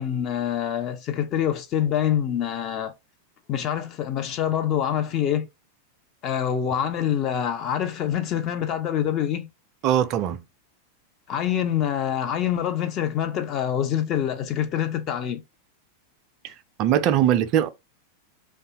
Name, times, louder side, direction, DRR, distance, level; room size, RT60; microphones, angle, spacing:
voice 1, 0.0-2.9 3.5-5.5 6.2-9.5 11.3-15.4, left 9 dB, 35° left, 0.4 m, -25 dB
voice 2, 9.8-10.4 16.4-17.7, right 11 dB, 40° right, 0.4 m, -21 dB
2.7 x 2.3 x 2.7 m
figure-of-eight pair, 90°, 0 cm